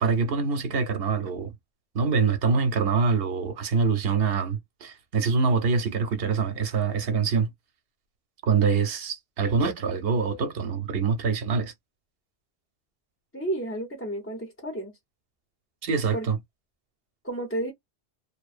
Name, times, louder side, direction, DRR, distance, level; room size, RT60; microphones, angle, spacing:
voice 1, 0.0-1.5 1.9-7.5 8.4-11.7 15.8-16.4, right 5 dB, 65° right, 0.9 m, -25 dB
voice 2, 13.3-14.9 16.1-16.3 17.2-17.7, right 1 dB, 15° left, 0.5 m, -31 dB
2.7 x 2.1 x 2.4 m
omnidirectional pair, 1.1 m